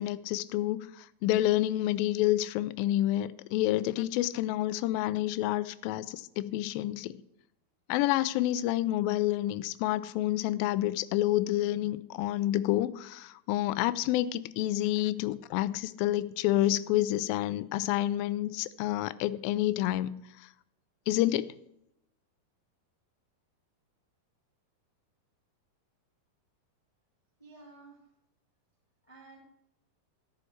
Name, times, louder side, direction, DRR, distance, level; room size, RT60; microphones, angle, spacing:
voice 1, 0.0-7.2 7.9-20.1 21.1-21.5, left 14 dB, 85° left, 2.1 m, -29 dB
voice 2, 27.4-28.0 29.0-29.4, right 3 dB, 25° left, 0.7 m, -52 dB
14.0 x 7.9 x 4.5 m
omnidirectional pair, 4.6 m